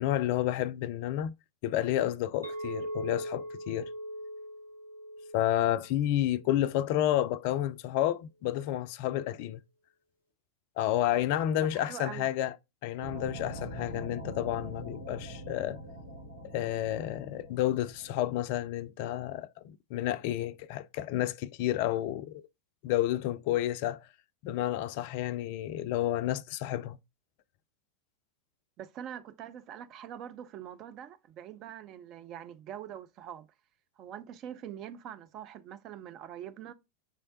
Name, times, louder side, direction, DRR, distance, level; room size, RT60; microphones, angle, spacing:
voice 1, 0.0-1.3 1.6-3.9 5.3-9.6 10.8-12.5 12.8-15.8 16.5-22.4 22.8-24.1 24.4-27.0, left 13 dB, 45° left, 0.3 m, -30 dB
Chink clink, 2.4-6.7, equal, 85° right, 1.0 m, -40 dB
voice 2, 11.7-12.3 28.8-33.5 34.0-36.7, right 10 dB, 35° right, 0.5 m, -44 dB
sound 1, 13.0-18.6, right 1 dB, 70° right, 1.4 m, -43 dB
6.2 x 3.2 x 2.7 m
figure-of-eight pair, 90°, 0 cm